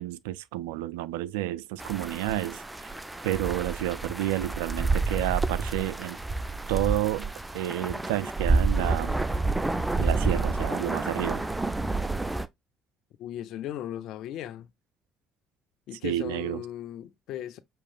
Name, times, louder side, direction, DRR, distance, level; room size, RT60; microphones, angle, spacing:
voice 1, 0.0-2.9 3.2-6.2 6.7-9.2 10.0-11.4 16.0-16.6, right 14 dB, 80° right, 0.4 m, -30 dB
sound 1, 1.8-12.5, right 3 dB, 15° right, 0.6 m, -29 dB
voice 2, 13.2-14.7 15.9-17.6, left 11 dB, 65° left, 0.6 m, -37 dB
6.5 x 3.0 x 2.4 m
hypercardioid pair, 55°, 0 cm